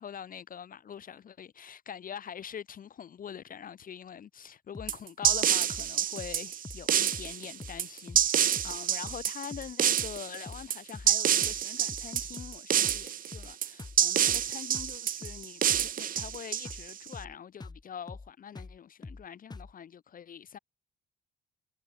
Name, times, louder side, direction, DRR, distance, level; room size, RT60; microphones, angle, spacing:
voice 1, 0.0-20.6, left 8 dB, 50° left, 0.9 m, -44 dB
sound 1, 4.7-5.0 5.2-5.4 5.7-5.9 6.2-6.4 6.6-6.9 7.1-7.3 7.6-7.8 8.1-8.3 8.6-8.8 9.0-9.3 9.5-9.7 10.0-10.2 10.5-10.7 10.9-11.2 11.4-11.6 11.9-12.6 12.8-13.1 13.3-13.5 13.8-14.0 14.3-14.5 14.7-15.0 15.2-15.4 15.7-15.9 16.2-16.4 16.6-16.9 17.1-17.3 17.6-17.8 18.1-18.3 18.6-18.8 19.0-19.2 19.5-19.7, left 3 dB, 20° left, 2.9 m, -44 dB
sound 2, 4.9-17.1, right 10 dB, 45° right, 0.5 m, -28 dB
cardioid pair, 85°, 19 cm